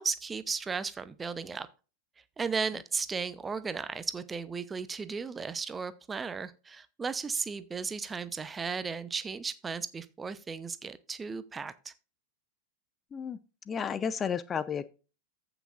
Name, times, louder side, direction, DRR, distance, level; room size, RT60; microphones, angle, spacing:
voice 1, 0.0-1.7 2.4-11.9, right 5 dB, 15° right, 0.7 m, -35 dB
voice 2, 13.7-14.9, left 7 dB, 20° left, 0.6 m, -32 dB
15.0 x 6.0 x 2.5 m
figure-of-eight pair, 90°, 0 cm